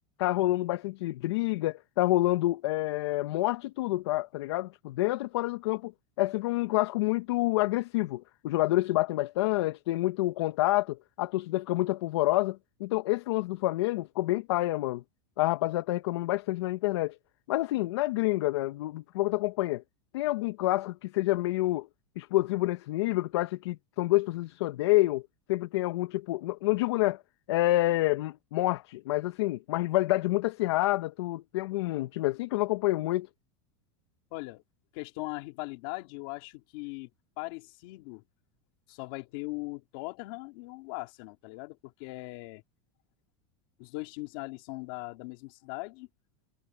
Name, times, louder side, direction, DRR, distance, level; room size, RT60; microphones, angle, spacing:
voice 1, 0.2-5.9 6.2-15.0 15.4-17.2 17.5-19.8 20.1-21.9 22.2-25.2 25.5-27.2 27.5-33.3, left 18 dB, 70° left, 0.8 m, -28 dB
voice 2, 34.3-34.6 34.9-37.1 37.4-38.2 38.9-42.6 43.8-46.1, left 25 dB, 50° left, 2.5 m, -40 dB
supercardioid pair, 165°, 14 cm